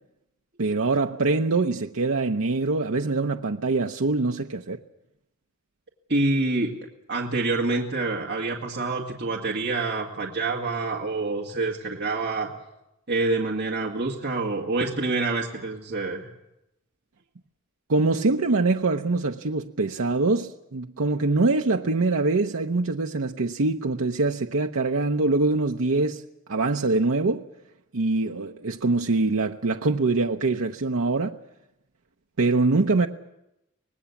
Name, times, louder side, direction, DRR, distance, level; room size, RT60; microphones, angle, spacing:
voice 1, 0.6-4.8 17.9-26.2 26.5-27.4 27.9-31.4 32.4-33.1, right 3 dB, 80° right, 0.8 m, -24 dB
voice 2, 6.1-6.7 7.1-12.5 13.1-16.3, right 3 dB, 50° right, 2.1 m, -27 dB
25.5 x 19.0 x 7.2 m
head